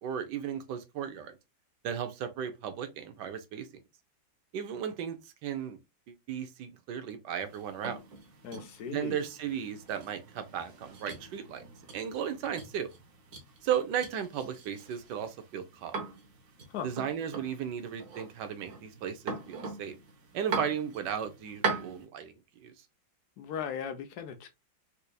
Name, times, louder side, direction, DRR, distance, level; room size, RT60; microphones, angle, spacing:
voice 1, 0.0-1.3 1.8-3.7 4.5-5.8 6.1-8.0 8.9-11.6 11.9-12.9 13.6-15.9 16.8-20.0 20.3-22.7, right 8 dB, 75° right, 1.2 m, -35 dB
sound 1, 7.4-22.1, right 4 dB, 55° right, 1.2 m, -41 dB
voice 2, 8.4-9.2 16.7-16.9 23.4-24.5, left 7 dB, 70° left, 1.0 m, -38 dB
4.3 x 2.6 x 2.3 m
omnidirectional pair, 2.0 m